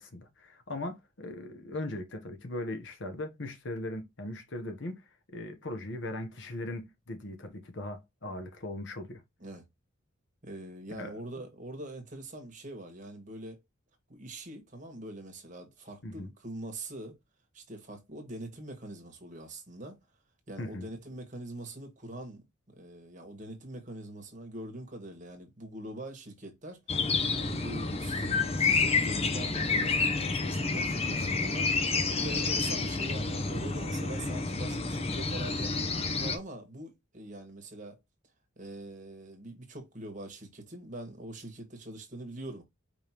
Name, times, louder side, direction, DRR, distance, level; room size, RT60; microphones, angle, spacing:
voice 1, 0.0-5.0 5.3-9.2 11.0-11.1 16.0-16.3 20.6-20.9, left 1 dB, 60° left, 1.0 m, -39 dB
voice 2, 10.4-13.6 14.1-17.2 17.5-20.0 20.5-27.1 27.4-35.8 36.2-38.0 38.6-42.6, right 1 dB, 35° right, 1.5 m, -43 dB
sound 1, 26.9-36.4, left 4 dB, 30° left, 0.6 m, -29 dB
5.1 x 3.5 x 2.9 m
head